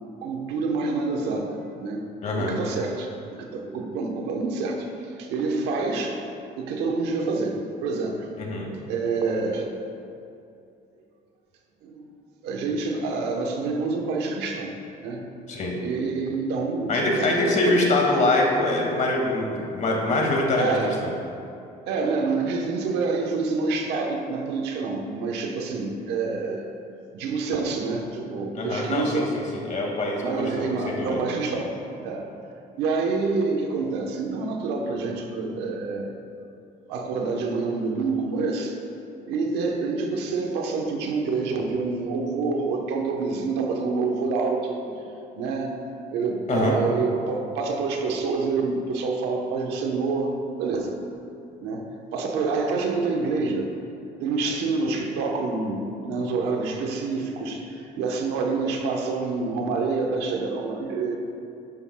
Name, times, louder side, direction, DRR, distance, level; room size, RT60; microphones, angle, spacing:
voice 1, 0.2-2.1 2.4-6.2 6.6-8.3 8.9-9.7 11.8-12.1 12.4-14.7 15.0-15.2 15.8-17.8 20.5-21.0 21.9-26.7 27.1-29.3 30.1-31.7 32.0-32.3 32.7-36.1 36.9-38.8 39.3-44.8 45.3-45.8 46.1-50.9 51.6-53.7 54.2-61.2, right 4 dB, 90° right, 2 dB, 1.1 m, -27 dB
voice 2, 2.2-2.6 8.4-8.7 15.5-15.7 16.9-20.9 28.6-31.2 46.5-46.8, left 2 dB, 45° left, -1 dB, 2.1 m, -24 dB
11.0 x 9.7 x 2.3 m, 2.6 s
cardioid pair, 110°, 17 cm